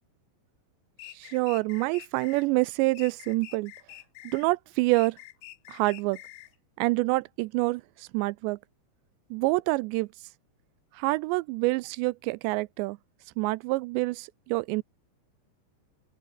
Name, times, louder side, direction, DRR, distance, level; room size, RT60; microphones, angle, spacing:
sound 1, 1.0-2.5 2.9-4.5 4.9-6.5, left 15 dB, 70° left, 3.0 m, -47 dB
voice 1, 1.1-3.7 4.2-5.2 5.7-6.2 6.8-8.6 9.3-10.1 10.9-13.0 13.4-14.8, right 22 dB, 85° right, 2.6 m, -27 dB
open air
omnidirectional pair, 5.3 m